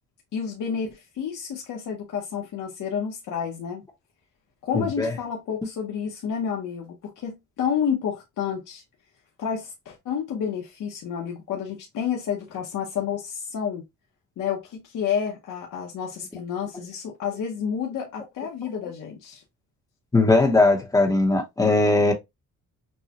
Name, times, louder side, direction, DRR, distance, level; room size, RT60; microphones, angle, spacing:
voice 1, 0.3-3.8 4.6-8.8 9.4-13.8 14.4-19.4, left 7 dB, 75° left, 1.2 m, -30 dB
voice 2, 4.7-5.1 20.1-22.1, left 2 dB, 10° left, 0.9 m, -19 dB
6.6 x 2.3 x 2.9 m
wide cardioid pair, 170°, 32 cm